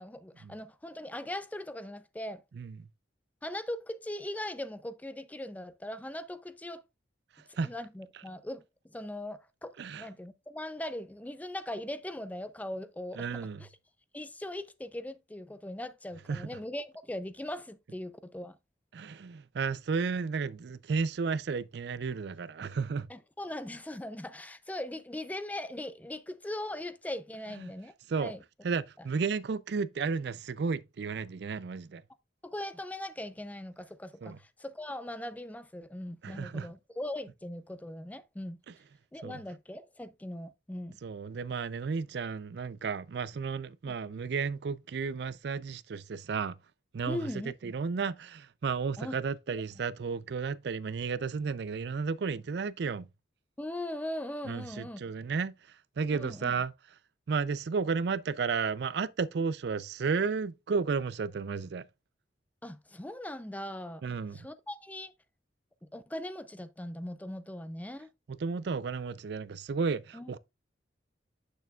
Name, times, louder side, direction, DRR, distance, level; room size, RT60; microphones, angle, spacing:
voice 1, 0.0-2.4 3.4-6.8 7.6-13.3 13.6-13.7 14.1-18.6 23.1-27.9 28.2-28.4 32.4-38.6 39.1-41.0 43.8-44.0 47.1-47.7 49.0-49.2 53.6-55.0 56.1-56.5 62.6-64.0 64.3-65.1 65.9-68.1 70.1-70.4, left 1 dB, 10° left, 0.4 m, -40 dB
voice 2, 13.1-13.6 16.3-16.5 18.9-23.1 27.6-27.7 28.1-28.3 28.6-32.0 34.2-34.4 36.2-36.7 39.2-39.4 41.0-46.6 46.9-47.3 47.6-53.1 54.5-55.5 56.0-56.7 57.3-61.8 64.0-64.5 68.4-70.4, right 5 dB, 60° right, 0.4 m, -33 dB
8.2 x 6.7 x 2.3 m
head